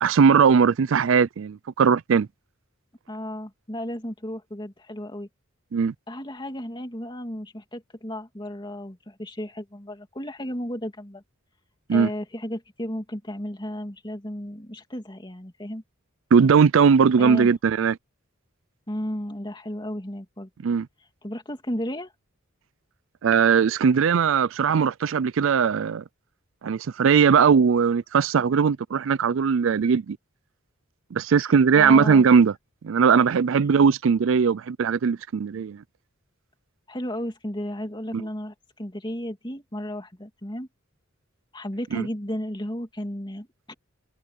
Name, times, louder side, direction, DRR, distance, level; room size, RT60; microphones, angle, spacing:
voice 1, 0.0-2.3 5.7-5.9 11.9-12.1 16.3-18.0 20.6-20.9 23.2-26.0 26.6-30.2 31.1-32.5 32.8-35.8 41.9-42.1, right 6 dB, 65° right, 0.4 m, -19 dB
voice 2, 3.1-5.3 6.1-11.2 11.9-15.8 17.2-17.5 18.9-20.5 21.2-22.1 31.8-32.3 36.9-40.7 41.5-43.7, equal, 20° left, 2.8 m, -33 dB
head